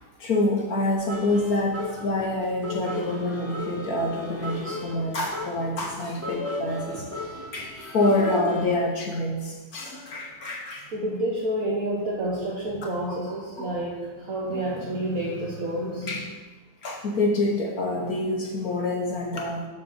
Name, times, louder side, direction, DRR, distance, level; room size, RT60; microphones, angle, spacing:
voice 1, 0.2-10.9 13.1-13.2 13.6-13.8 14.5-14.8 16.1-16.2 16.8-19.7, left 2 dB, 55° left, 0 dB, 1.2 m, -27 dB
sound 1, 1.1-8.7, left 2 dB, 15° right, 0.6 m, -36 dB
voice 2, 10.9-16.2, right 1 dB, 50° right, -4 dB, 1.3 m, -29 dB
7.0 x 4.4 x 6.5 m, 1.3 s
omnidirectional pair, 2.2 m